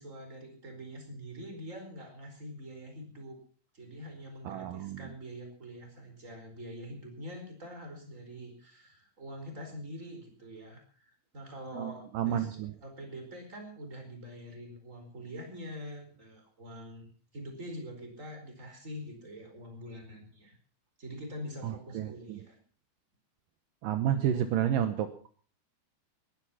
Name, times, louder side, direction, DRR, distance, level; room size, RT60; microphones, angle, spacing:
voice 1, 0.0-3.4 3.7-20.6 21.0-22.6, equal, 15° right, 5 dB, 4.4 m, -45 dB
voice 2, 4.5-5.0 11.7-12.7 21.6-22.4 23.8-25.1, right 10 dB, 80° right, 9 dB, 2.0 m, -31 dB
20.5 x 11.5 x 5.7 m, 0.43 s
omnidirectional pair, 5.3 m